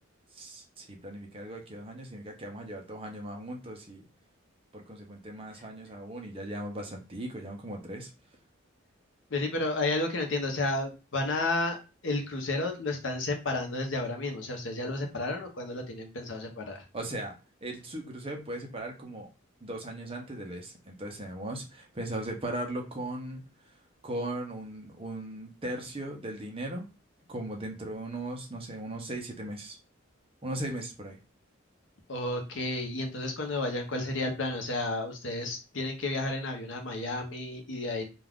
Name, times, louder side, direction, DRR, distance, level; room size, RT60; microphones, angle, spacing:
voice 1, 0.3-4.1 4.7-8.1 16.9-19.3 19.6-23.4 24.0-26.9 27.3-29.8 30.4-31.2, right 1 dB, 30° right, 2 dB, 0.6 m, -38 dB
voice 2, 9.3-11.8 12.0-16.8 32.1-38.0, left 2 dB, 70° left, 4 dB, 0.7 m, -32 dB
2.4 x 2.3 x 3.4 m, 0.30 s
head